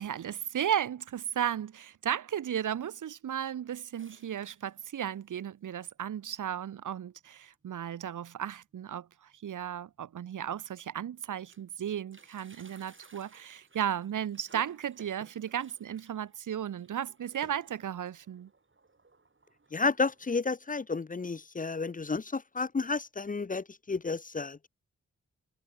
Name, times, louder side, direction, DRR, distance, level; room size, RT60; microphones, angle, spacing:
voice 1, 0.0-18.5, right 9 dB, 85° right, 1.1 m, -35 dB
sound 1, 4.0-5.1 5.7-5.8 6.0-6.1 6.9-7.0 7.4-7.6 8.0-8.1 9.3-9.4 10.1-10.2 10.5-11.8 12.0-20.4, right 3 dB, 40° right, 6.4 m, -58 dB
voice 2, 19.7-24.7, left 4 dB, 25° left, 0.6 m, -31 dB
cardioid pair, 55°, 30 cm